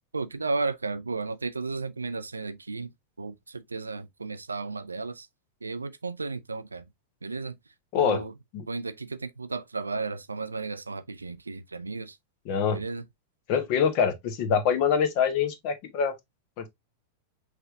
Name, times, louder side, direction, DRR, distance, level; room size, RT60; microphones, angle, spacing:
voice 1, 0.1-2.9 3.2-5.3 5.6-6.9 7.2-7.6 8.0-8.3 8.7-12.2 12.7-13.0, right 3 dB, 80° right, 0.4 m, -34 dB
voice 2, 7.9-8.2 8.5-8.6 12.5-12.8 13.5-16.1 16.6-16.7, left 7 dB, 45° left, 1.0 m, -25 dB
5.8 x 3.4 x 2.4 m
figure-of-eight pair, 90°, 0 cm